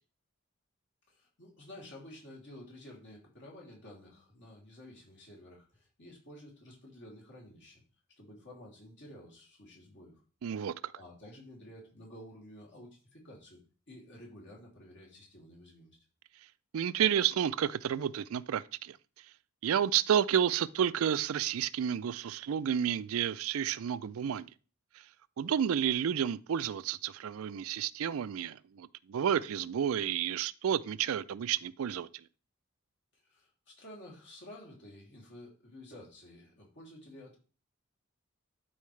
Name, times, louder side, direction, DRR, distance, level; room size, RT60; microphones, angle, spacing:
voice 1, 1.1-7.8 8.2-10.2 10.9-13.6 13.9-16.0 33.1-37.4, left 1 dB, 60° left, 2.9 m, -52 dB
voice 2, 10.4-10.7 16.7-19.0 19.6-24.5 25.4-32.1, right 9 dB, 75° right, 0.4 m, -30 dB
11.5 x 4.7 x 3.2 m
head